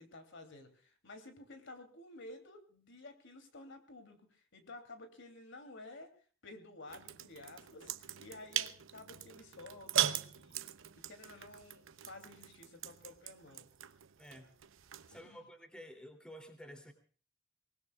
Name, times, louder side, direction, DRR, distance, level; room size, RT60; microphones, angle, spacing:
voice 1, 0.0-6.1 6.4-10.7 10.9-13.7 15.1-15.4, left 2 dB, 65° left, 6 dB, 3.0 m, -53 dB
sound 1, 6.9-15.2, right 12 dB, 70° right, 0.8 m, -40 dB
voice 2, 15.1-16.9, equal, 5° left, 5 dB, 2.9 m, -51 dB
24.0 x 19.5 x 2.4 m, 0.41 s
head